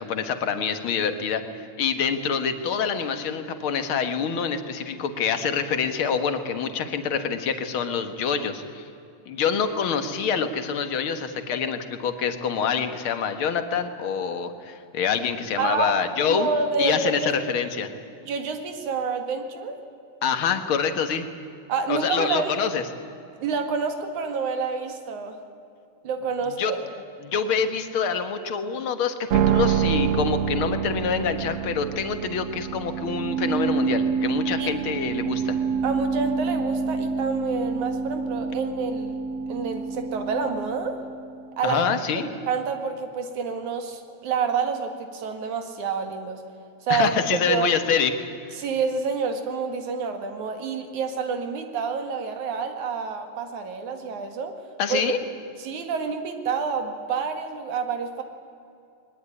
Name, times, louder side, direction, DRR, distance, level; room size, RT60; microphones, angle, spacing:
voice 1, 0.0-8.8 9.3-16.5 16.8-17.9 20.2-21.3 21.9-22.8 26.6-26.7 27.2-35.6 41.6-42.3 46.9-48.1 54.8-55.2, left 6 dB, 50° left, 9 dB, 2.0 m, -26 dB
voice 2, 15.6-16.0 16.3-17.3 18.2-19.8 21.7-22.6 23.4-25.4 26.0-26.9 34.6-34.8 35.8-39.2 39.5-41.0 41.6-41.8 42.1-46.4 46.8-47.7 48.6-54.6 54.9-55.0 55.6-58.2, right 5 dB, 90° right, 6 dB, 3.3 m, -28 dB
sound 1, 29.3-41.6, right 6 dB, 65° right, 1.6 m, -27 dB
21.5 x 19.5 x 9.8 m, 2.6 s
omnidirectional pair, 3.3 m